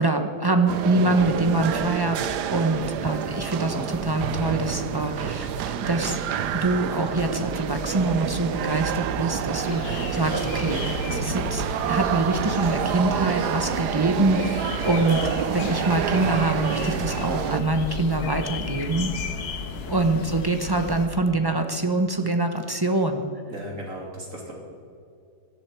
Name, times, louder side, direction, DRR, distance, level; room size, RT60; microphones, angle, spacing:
voice 1, 0.0-6.2 6.5-15.2 15.5-19.1 19.9-23.3, right 2 dB, 25° right, 5 dB, 0.5 m, -25 dB
sound 1, 0.7-17.6, right 9 dB, 75° right, 1.3 m, -28 dB
sound 2, 1.1-20.5, left 2 dB, 30° left, 0.4 m, -42 dB
sound 3, 9.7-21.1, left 5 dB, 65° left, 1.4 m, -35 dB
voice 2, 23.5-24.5, equal, 50° right, -2 dB, 3.3 m, -37 dB
17.5 x 11.5 x 4.5 m, 2.4 s
omnidirectional pair, 1.8 m